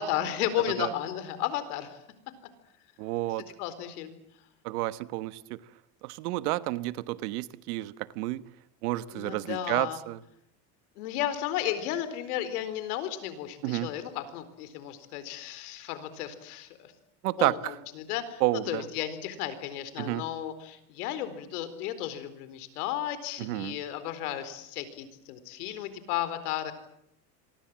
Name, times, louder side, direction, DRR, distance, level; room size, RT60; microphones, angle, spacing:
voice 1, 0.0-1.9 3.6-4.1 9.1-10.0 11.0-16.9 17.4-26.7, left 11 dB, 85° left, 13 dB, 4.3 m, -34 dB
voice 2, 3.0-3.4 4.6-5.6 6.0-8.4 8.8-10.2 13.6-13.9 17.2-17.7 18.4-18.8 20.0-20.2 23.4-23.8, right 17 dB, 85° right, 15 dB, 1.4 m, -30 dB
27.5 x 23.0 x 7.5 m, 0.77 s
cardioid pair, 160°, 44 cm